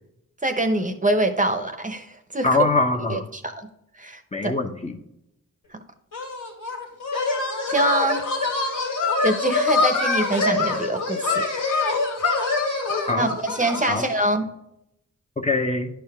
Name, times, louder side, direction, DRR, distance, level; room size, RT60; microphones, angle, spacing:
voice 1, 0.4-2.5 3.1-3.7 4.0-4.5 7.7-8.3 9.2-11.5 13.2-14.5, right 1 dB, 25° right, 7 dB, 0.9 m, -24 dB
voice 2, 2.4-3.3 4.3-5.0 13.1-13.3 13.9-14.0 15.4-15.9, left 2 dB, 20° left, 4 dB, 1.0 m, -23 dB
sound 1, 6.1-14.2, left 3 dB, 85° left, 2.3 m, -24 dB
10.5 x 4.8 x 3.5 m, 0.81 s
cardioid pair, 70°, 31 cm